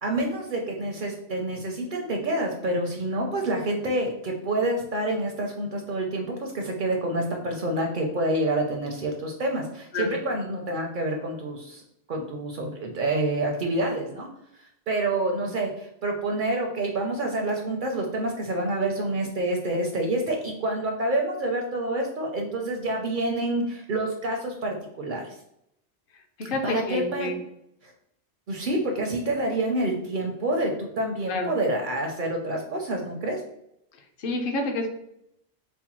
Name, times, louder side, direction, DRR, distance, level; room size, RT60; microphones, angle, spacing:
voice 1, 0.0-11.8 12.1-14.3 14.9-25.2 26.6-27.3 27.8-27.9 28.5-33.4, right 1 dB, 55° right, 1 dB, 0.6 m, -27 dB
voice 2, 26.4-27.4 31.3-31.5 34.2-34.9, left 2 dB, 55° left, 3 dB, 0.8 m, -28 dB
4.3 x 2.1 x 2.9 m, 0.76 s
omnidirectional pair, 1.2 m